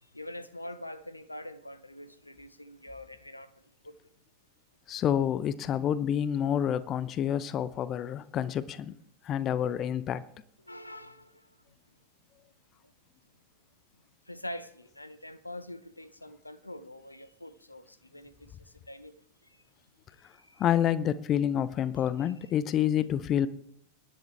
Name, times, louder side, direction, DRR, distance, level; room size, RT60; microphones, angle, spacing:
voice 1, 0.0-3.9 10.6-11.6 12.8-12.9 14.3-19.1 19.4-19.6 20.2-20.6 22.2-22.3, left 1 dB, 85° left, 0.7 m, -45 dB
voice 2, 4.9-9.0 9.2-10.2 20.6-23.5, left 10 dB, 30° left, 0.7 m, -28 dB
24.5 x 10.5 x 3.4 m
figure-of-eight pair, 90°, 0 cm